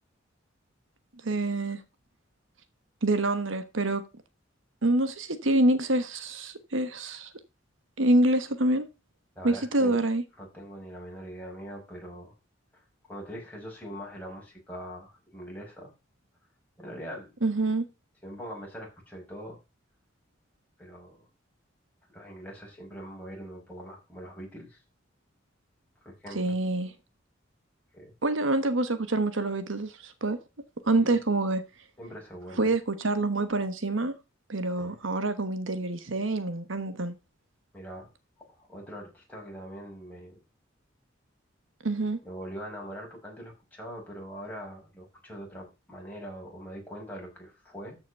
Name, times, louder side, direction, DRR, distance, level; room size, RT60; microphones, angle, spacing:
voice 1, 1.2-1.8 3.0-4.0 4.8-7.3 8.0-8.9 9.4-10.2 17.4-17.8 26.3-26.9 28.2-30.4 30.9-31.6 32.6-34.1 34.5-37.1 41.8-42.2, right 2 dB, 75° right, 1.3 m, -26 dB
voice 2, 9.4-10.0 10.4-12.3 12.7-15.9 16.8-17.3 18.2-19.6 20.8-21.2 22.1-24.8 26.0-26.6 27.9-28.1 30.9-31.2 32.0-32.7 34.8-35.0 37.7-38.1 38.6-40.4 42.2-48.0, equal, 10° left, 6.0 m, -42 dB
13.5 x 6.2 x 5.4 m
head